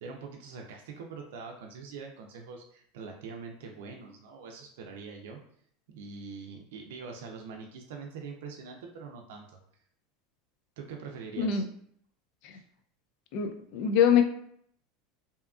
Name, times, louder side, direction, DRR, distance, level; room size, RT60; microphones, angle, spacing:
voice 1, 0.0-5.4 5.9-9.6 10.8-11.6 12.5-12.6, right 5 dB, 80° right, 2 dB, 0.4 m, -43 dB
voice 2, 13.3-14.2, left 8 dB, 60° left, 6 dB, 0.4 m, -24 dB
2.7 x 2.3 x 2.3 m, 0.65 s
supercardioid pair, 130°, 0 cm